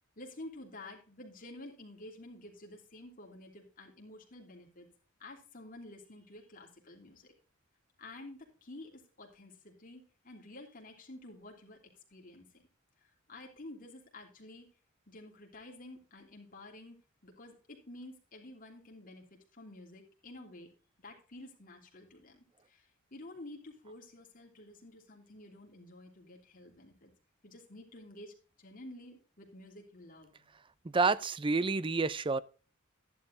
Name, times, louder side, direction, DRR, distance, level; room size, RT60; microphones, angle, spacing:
voice 1, 0.2-4.9 5.2-7.3 8.0-11.8 12.1-12.6 13.0-14.7 15.1-17.0 17.2-19.2 19.5-20.7 21.0-27.1 27.4-30.5, left 1 dB, 40° left, 3.2 m, -51 dB
voice 2, 30.9-32.4, right 4 dB, 25° right, 0.5 m, -29 dB
13.0 x 11.0 x 2.6 m
head